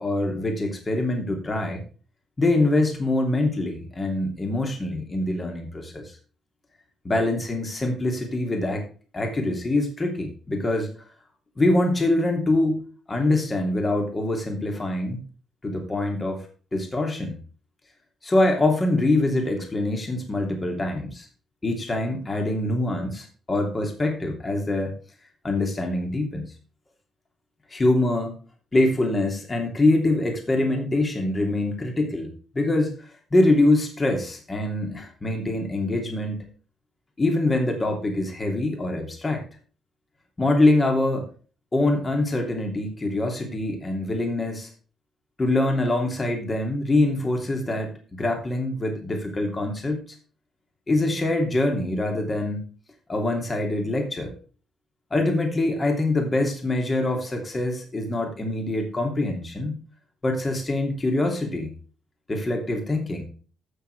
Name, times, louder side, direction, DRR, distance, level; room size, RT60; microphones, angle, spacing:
voice 1, 0.0-1.8 2.4-6.2 7.0-8.8 9.1-10.9 11.6-15.2 15.6-16.5 16.7-17.4 18.2-21.3 21.6-24.9 25.4-26.5 27.7-28.4 28.7-36.4 37.2-39.5 40.4-41.3 41.7-44.7 45.4-50.0 50.9-52.7 53.1-54.3 55.1-59.8 60.2-61.7 62.3-63.2, left 2 dB, 25° left, 3 dB, 2.8 m, -24 dB
15.0 x 6.5 x 3.4 m, 0.38 s
cardioid pair, 90°, 0 cm